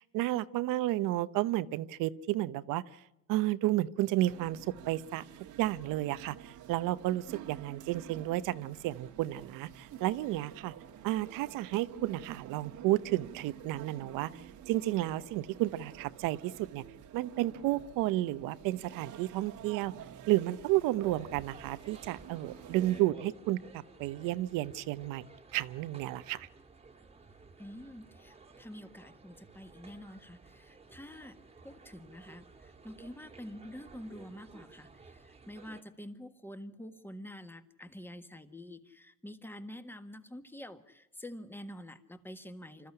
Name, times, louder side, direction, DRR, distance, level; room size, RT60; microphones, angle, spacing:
voice 1, 0.0-2.8 3.3-5.2 5.6-10.7 11.0-16.8 17.1-19.9 20.3-23.6 24.0-25.3 25.5-26.5, right 16 dB, 85° right, 15 dB, 0.9 m, -32 dB
sound 1, 4.2-23.0, right 10 dB, 70° right, 1.5 m, -50 dB
sound 2, 21.0-35.8, right 4 dB, 20° right, 1.8 m, -54 dB
voice 2, 27.6-42.9, left 1 dB, 5° left, 9 dB, 1.6 m, -47 dB
26.5 x 14.0 x 9.9 m, 0.88 s
cardioid pair, 105°, 32 cm